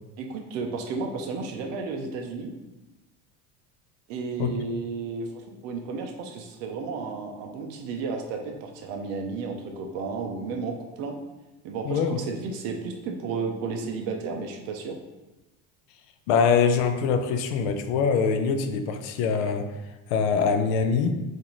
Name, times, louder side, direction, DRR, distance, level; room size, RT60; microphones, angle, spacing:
voice 1, 0.2-2.5 4.1-11.1 11.6-12.0 12.3-15.0, right 4 dB, 50° right, 3 dB, 0.5 m, -33 dB
voice 2, 11.8-12.3 16.3-19.7 20.1-21.1, left 6 dB, 85° left, 7 dB, 0.5 m, -23 dB
3.9 x 2.6 x 2.9 m, 1.1 s
cardioid pair, 175°, 33 cm